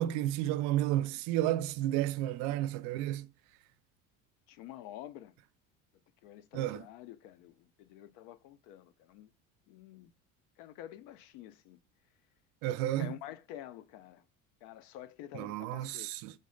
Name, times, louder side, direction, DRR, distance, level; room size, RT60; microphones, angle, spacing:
voice 1, 0.0-3.3 6.5-6.8 12.6-13.1 15.3-16.3, right 13 dB, 65° right, 0.5 m, -32 dB
voice 2, 4.5-5.3 6.2-9.3 9.7-10.1 10.6-11.8 13.0-14.2 14.6-16.1, left 12 dB, 80° left, 0.5 m, -48 dB
5.2 x 2.1 x 3.7 m
cardioid pair, 160°, 31 cm